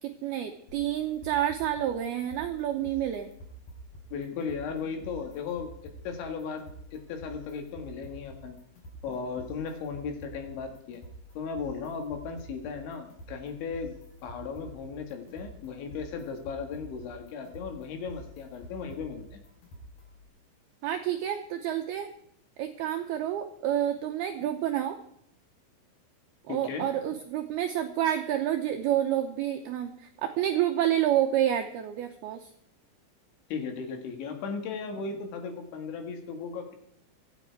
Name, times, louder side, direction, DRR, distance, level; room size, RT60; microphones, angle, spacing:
voice 1, 0.0-3.3 20.8-22.1 22.6-25.0 26.4-32.5, right 11 dB, 90° right, 5 dB, 2.2 m, -29 dB
sound 1, 0.7-20.3, right 1 dB, 45° left, 5.4 m, -48 dB
voice 2, 4.1-8.6 9.0-11.0 11.4-13.9 14.2-19.4 26.5-26.9 33.5-36.8, left 5 dB, 70° left, 5 dB, 4.1 m, -36 dB
24.5 x 9.0 x 4.7 m, 0.75 s
omnidirectional pair, 5.6 m